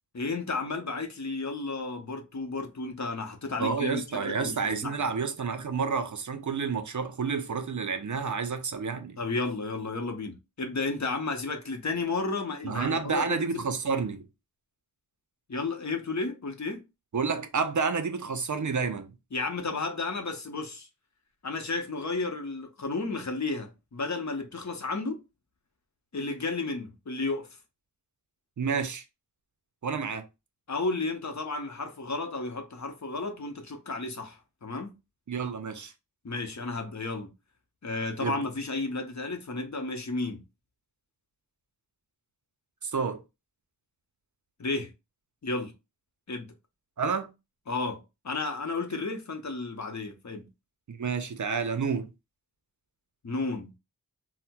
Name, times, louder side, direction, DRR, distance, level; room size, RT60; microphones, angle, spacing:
voice 1, 0.1-4.5 4.8-5.0 9.2-13.5 15.5-16.8 19.3-20.9 21.4-25.2 26.1-27.5 30.7-34.9 36.2-37.3 37.8-40.4 44.6-44.9 45.4-45.7 46.3-46.5 47.7-50.5 53.2-53.8, left 3 dB, 50° left, 0.7 m, -32 dB
voice 2, 3.6-9.2 12.6-14.2 17.1-19.1 28.6-29.0 29.8-30.3 35.3-35.9 38.2-38.4 42.8-43.2 47.0-47.3 50.9-52.1, right 5 dB, 55° right, 0.5 m, -29 dB
4.2 x 2.1 x 2.2 m
wide cardioid pair, 45°, 37 cm